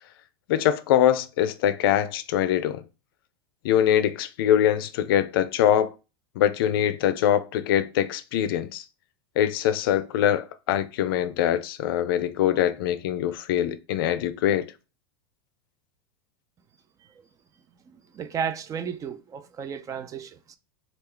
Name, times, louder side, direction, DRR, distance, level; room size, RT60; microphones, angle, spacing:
voice 1, 0.5-2.8 3.6-5.9 6.4-8.8 9.4-14.7, left 10 dB, 65° left, 0.4 m, -23 dB
voice 2, 17.9-20.6, right 7 dB, 25° right, 0.4 m, -33 dB
3.2 x 2.4 x 3.6 m
hypercardioid pair, 105°, 13 cm